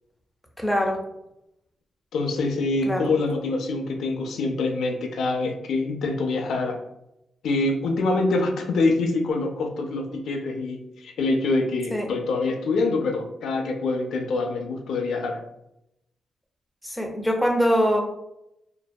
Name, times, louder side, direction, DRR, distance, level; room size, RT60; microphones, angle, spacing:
voice 1, 0.6-1.0 2.9-3.1 11.9-12.1 16.8-18.0, equal, 5° left, 1 dB, 0.4 m, -23 dB
voice 2, 2.1-6.8 7.4-15.4, left 3 dB, 80° left, 4 dB, 0.3 m, -25 dB
2.6 x 2.1 x 2.2 m, 0.83 s
cardioid pair, 115°, 0 cm